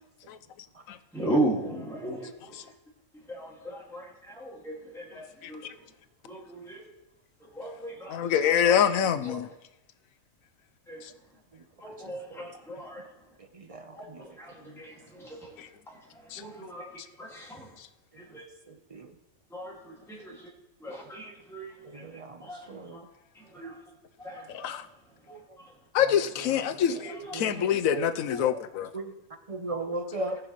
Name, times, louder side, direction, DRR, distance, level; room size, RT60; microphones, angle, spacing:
voice 1, 1.1-2.5 3.3-5.7 6.2-6.8 7.4-8.8 9.2-9.4 10.9-11.0 11.8-13.0 13.9-14.0 14.4-15.5 15.9-16.8 17.2-17.7 18.3-18.4 19.5-20.5 20.8-22.0 22.4-22.6 22.9-23.0 23.4-23.7 24.2-24.8 25.6-25.7 27.1-27.3, right 1 dB, ahead, -4 dB, 2.0 m, -36 dB
voice 2, 5.4-5.7 8.1-9.5 11.0-11.1 15.6-15.7 16.3-16.4 17.8-17.9 24.5-24.8 25.9-28.9, left 9 dB, 85° left, 12 dB, 1.1 m, -26 dB
voice 3, 12.0-12.4 13.5-14.2 18.9-19.1 21.9-23.0 25.3-25.4 27.3-28.1 28.4-28.6 28.9-29.1 29.5-30.4, right 2 dB, 35° right, 6 dB, 0.6 m, -37 dB
19.0 x 6.7 x 3.1 m, 0.94 s
omnidirectional pair, 1.4 m